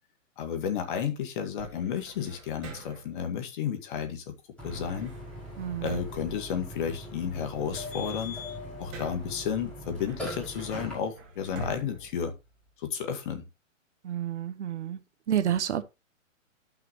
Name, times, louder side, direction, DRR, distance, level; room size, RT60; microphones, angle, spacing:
voice 1, 0.4-4.3 4.6-5.1 5.8-8.4 8.8-12.3 12.8-13.4, left 7 dB, 40° left, 1.8 m, -32 dB
sound 1, 1.6-3.2 4.7-7.1 7.5-9.4 10.0-13.0, right 2 dB, 30° right, 2.7 m, -46 dB
Burping eructation, 4.6-10.9, left 1 dB, 5° left, 5.8 m, -40 dB
voice 2, 5.6-5.9 14.0-15.0 15.3-15.8, right 10 dB, 60° right, 1.1 m, -29 dB
13.0 x 5.9 x 3.1 m
hypercardioid pair, 145°, 39 cm